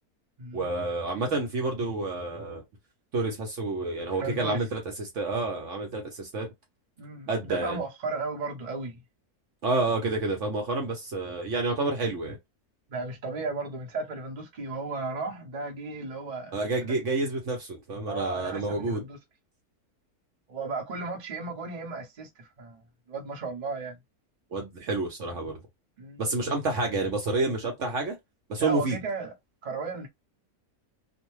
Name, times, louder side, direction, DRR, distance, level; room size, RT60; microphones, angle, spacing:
voice 1, 0.5-2.6 3.1-6.5 7.3-7.8 9.6-12.4 16.5-19.0 24.5-25.6 26.2-28.2 28.5-29.0, right 3 dB, 60° right, 1.0 m, -29 dB
voice 2, 4.2-4.6 7.0-9.0 12.9-16.5 16.8-16.9 18.1-19.2 20.5-22.8 23.1-24.0 26.0-26.2 28.6-29.3 29.6-30.1, right 3 dB, 40° right, 0.7 m, -34 dB
2.6 x 2.1 x 3.0 m
omnidirectional pair, 1.6 m